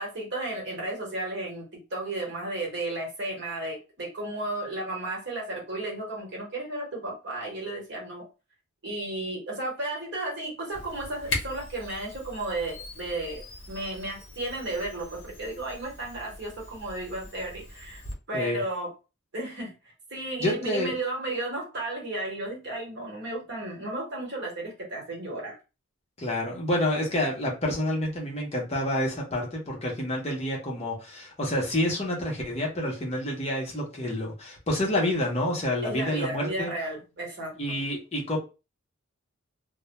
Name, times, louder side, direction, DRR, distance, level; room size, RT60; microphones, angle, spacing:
voice 1, 0.0-8.3 8.8-13.4 13.7-18.0 18.3-18.9 19.3-19.7 20.1-25.6 35.8-37.5, right 2 dB, 55° right, -2 dB, 1.0 m, -33 dB
Camera, 10.7-18.2, left 3 dB, 60° left, 0.8 m, -40 dB
voice 2, 20.4-20.9 26.2-36.7 37.6-38.4, left 1 dB, 30° left, -2 dB, 0.7 m, -28 dB
2.1 x 2.1 x 2.8 m, 0.30 s
head